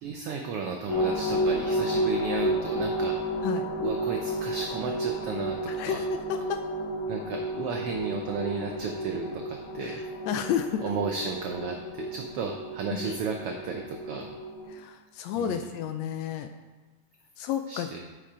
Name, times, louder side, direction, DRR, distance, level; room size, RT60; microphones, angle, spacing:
voice 1, 0.0-3.2 3.8-6.1 7.1-10.0 10.8-14.3 15.4-15.7 17.7-18.0, right 5 dB, 90° right, 3 dB, 1.2 m, -34 dB
sound 1, 0.9-14.7, equal, 40° left, 2.9 m, -31 dB
voice 2, 5.7-6.0 6.3-6.6 9.8-10.0 10.3-10.8 14.7-16.5 17.4-17.9, left 9 dB, 80° left, 8 dB, 1.6 m, -31 dB
8.8 x 5.8 x 4.9 m, 1.3 s
omnidirectional pair, 3.4 m